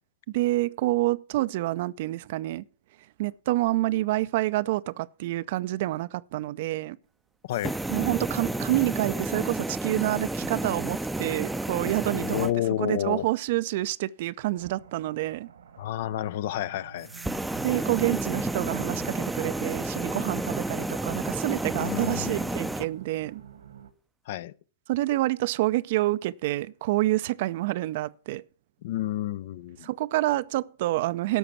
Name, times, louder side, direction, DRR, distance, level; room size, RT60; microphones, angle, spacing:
voice 1, 0.3-2.6 3.2-7.0 7.9-12.5 12.8-15.5 17.6-23.4 24.9-28.4 29.8-31.4, right 17 dB, 55° right, 0.5 m, -28 dB
sound 1, 7.5-12.5 17.0-22.9, right 2 dB, 5° right, 0.6 m, -31 dB
voice 2, 12.1-13.2 15.8-17.1 21.8-22.6 24.3-24.5 28.8-29.9, left 13 dB, 60° left, 0.5 m, -30 dB
sound 2, 14.6-23.9, right 7 dB, 75° right, 1.4 m, -49 dB
12.5 x 5.9 x 7.1 m
figure-of-eight pair, 105°, 0 cm